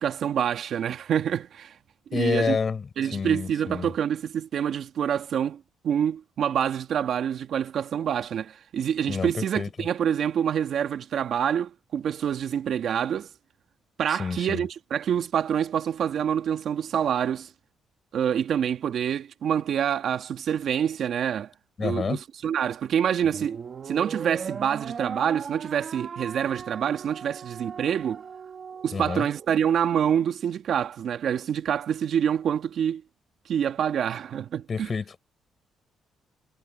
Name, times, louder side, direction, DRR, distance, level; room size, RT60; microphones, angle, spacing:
voice 1, 0.0-1.7 2.1-2.6 3.0-13.3 14.0-17.5 18.1-21.5 21.8-23.6 23.9-28.2 28.8-33.0 33.5-34.9, right 8 dB, 65° right, 2.0 m, -26 dB
voice 2, 2.1-3.9 9.1-9.7 14.1-14.6 21.8-22.2 28.9-29.2 34.7-35.2, left 5 dB, 40° left, 7.6 m, -29 dB
sound 1, 23.2-29.7, right 6 dB, 45° right, 2.2 m, -38 dB
cardioid pair, 90°, 0 cm